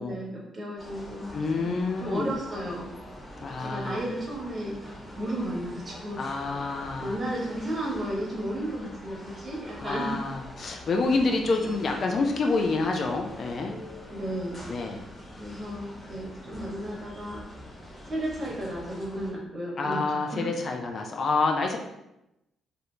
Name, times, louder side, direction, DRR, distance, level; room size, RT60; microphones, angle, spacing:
voice 1, 0.0-2.9 3.6-4.8 5.2-6.2 7.0-10.2 14.1-14.7 15.4-17.4 18.0-20.5, right 1 dB, 30° right, -3 dB, 1.1 m, -33 dB
sound 1, 0.8-19.3, left 1 dB, 30° left, 1.1 m, -44 dB
voice 2, 1.3-2.3 3.4-4.0 6.2-7.2 9.8-13.7 14.7-15.1 19.8-21.8, left 3 dB, 50° left, 3 dB, 0.4 m, -28 dB
2.7 x 2.6 x 3.2 m, 0.88 s
cardioid pair, 90°, 0 cm